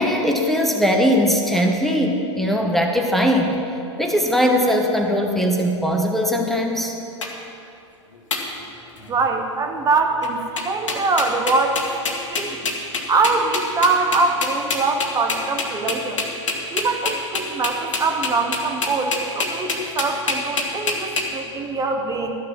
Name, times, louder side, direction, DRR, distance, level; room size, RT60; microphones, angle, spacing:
voice 1, 0.0-3.6 4.0-6.9, equal, ahead, 1 dB, 1.0 m, -20 dB
sound 1, 7.2-7.3 8.3-8.4 9.0-9.2 10.2-10.3 10.6-21.2, left 3 dB, 85° left, 1.8 m, -25 dB
voice 2, 9.1-11.9 12.3-12.7 13.1-16.2 16.7-22.4, right 3 dB, 20° right, 4 dB, 1.0 m, -23 dB
13.0 x 6.6 x 7.3 m, 2.7 s
hypercardioid pair, 110°, 16 cm